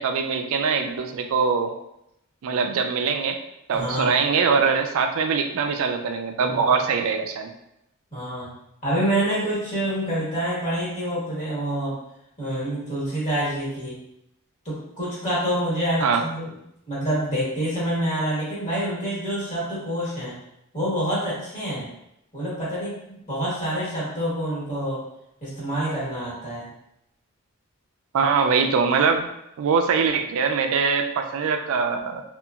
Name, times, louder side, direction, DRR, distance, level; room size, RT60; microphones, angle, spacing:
voice 1, 0.0-1.7 2.4-3.4 3.7-7.5 16.0-16.2 28.1-29.3 29.6-32.2, right 5 dB, 65° right, 5 dB, 0.3 m, -22 dB
voice 2, 3.7-4.2 6.4-6.7 8.1-8.5 8.8-12.0 12.4-14.0 14.6-16.6 16.9-20.4 20.7-21.9 22.3-25.0 25.4-26.7, right 1 dB, 35° left, -8 dB, 1.3 m, -27 dB
2.8 x 2.4 x 2.3 m, 0.81 s
head